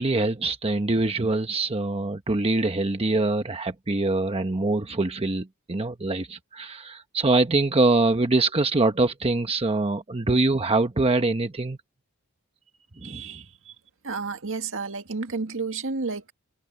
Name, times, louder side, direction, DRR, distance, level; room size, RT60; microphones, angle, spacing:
voice 1, 0.0-11.8 13.0-13.2, right 2 dB, 25° right, 1.0 m, -24 dB
voice 2, 13.0-13.6 14.0-16.3, right 4 dB, 65° right, 1.9 m, -31 dB
open air
head